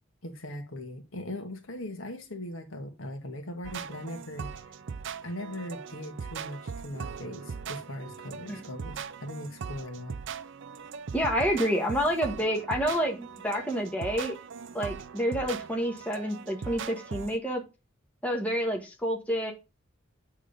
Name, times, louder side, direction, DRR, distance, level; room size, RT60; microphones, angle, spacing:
voice 1, 0.2-4.5 5.2-10.2, left 1 dB, 85° left, 1.6 m, -39 dB
sound 1, 3.6-17.4, right 6 dB, 65° right, 0.5 m, -40 dB
voice 2, 11.1-14.4 14.7-17.6 18.2-19.5, equal, 5° left, 1.5 m, -28 dB
8.7 x 3.7 x 5.2 m
head